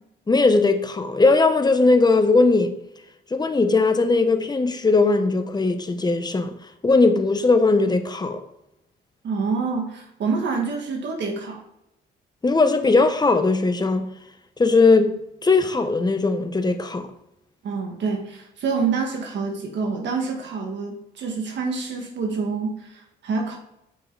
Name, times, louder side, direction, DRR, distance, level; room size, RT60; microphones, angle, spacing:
voice 1, 0.3-2.7 3.3-6.5 6.8-8.4 12.4-14.1 14.6-17.1, left 3 dB, 20° left, 1.0 m, -19 dB
voice 2, 9.2-11.6 17.6-23.6, right 4 dB, 65° right, 1.6 m, -27 dB
9.0 x 5.5 x 4.0 m
cardioid pair, 90°, 20 cm